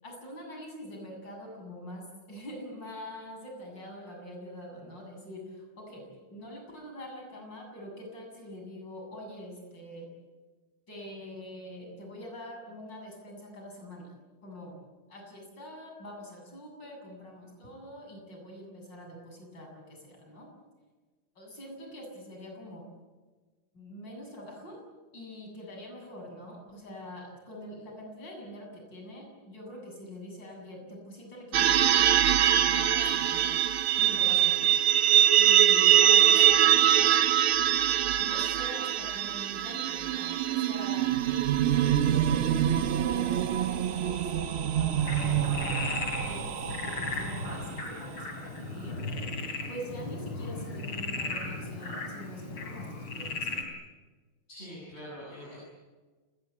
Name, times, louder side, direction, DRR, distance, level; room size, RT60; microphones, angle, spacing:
voice 1, 0.0-10.1 10.9-14.1 14.4-14.8 15.1-20.5 21.4-22.8 23.7-24.8 25.1-33.5 34.0-34.7 35.4-37.2 38.2-42.5 43.1-49.0 49.7-53.6, equal, 55° left, 1 dB, 8.4 m, -44 dB
sound 1, 31.5-44.1, right 11 dB, 85° right, 1.9 m, -23 dB
sound 2, 41.0-48.0, right 9 dB, 60° right, 0.6 m, -29 dB
Frog, 45.0-53.6, left 3 dB, 85° left, 4.7 m, -36 dB
voice 2, 54.5-55.6, equal, 30° left, -6 dB, 8.3 m, -44 dB
29.5 x 19.0 x 8.6 m, 1.4 s
omnidirectional pair, 2.3 m